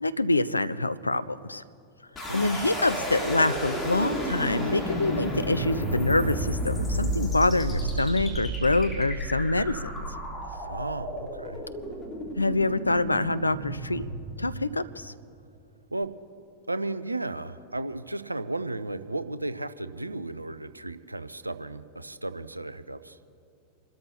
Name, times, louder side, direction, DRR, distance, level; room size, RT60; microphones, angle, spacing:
voice 1, 0.0-1.6 2.3-9.9 12.4-14.1 14.4-15.1, left 2 dB, 80° left, 15 dB, 0.4 m, -26 dB
sound 1, 2.2-15.1, equal, 15° left, 3.1 m, -32 dB
voice 2, 2.2-2.7 10.7-11.6 15.9-16.1 16.7-23.2, right 2 dB, 85° right, 12 dB, 0.5 m, -34 dB
28.5 x 13.0 x 2.8 m, 2.5 s
figure-of-eight pair, 90°, 0 cm